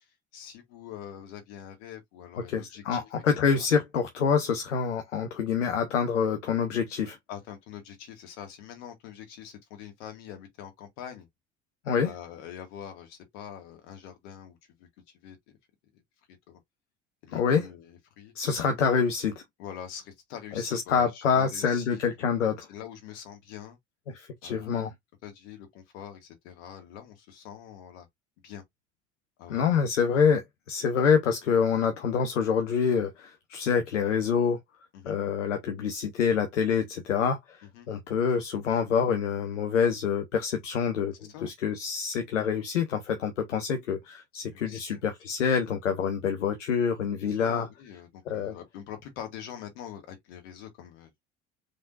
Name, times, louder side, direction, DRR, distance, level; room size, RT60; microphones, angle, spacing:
voice 1, 0.3-3.1 3.5-3.7 7.3-11.3 12.0-14.9 15.2-15.4 16.5-16.6 17.2-18.3 19.6-22.3 22.7-23.8 24.4-24.9 25.2-28.1 28.4-28.6 29.4-29.6 34.9-35.2 37.7-37.9 41.3-41.5 44.5-45.0 47.2-51.2, left 9 dB, 70° left, 2.1 m, -44 dB
voice 2, 2.5-7.2 11.9-12.1 17.3-17.7 18.3-19.3 20.5-22.7 24.1-24.9 29.5-34.6 35.0-47.7 48.3-48.6, left 6 dB, 90° left, 0.9 m, -26 dB
5.2 x 3.7 x 2.5 m
hypercardioid pair, 60°, 36 cm